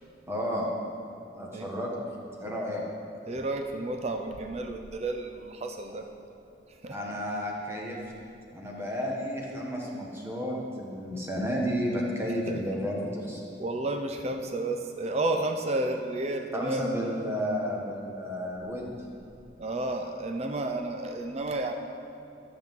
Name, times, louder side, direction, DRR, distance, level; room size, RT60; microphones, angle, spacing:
voice 1, 0.3-0.7 1.3-1.9 2.4-2.8 6.9-8.0 8.5-13.4 16.5-18.9, equal, 15° right, -3 dB, 1.3 m, -32 dB
voice 2, 3.3-6.1 6.7-7.0 12.5-12.8 13.6-17.3 19.6-21.7, right 2 dB, 35° right, 5 dB, 0.5 m, -32 dB
13.5 x 7.6 x 3.7 m, 2.6 s
head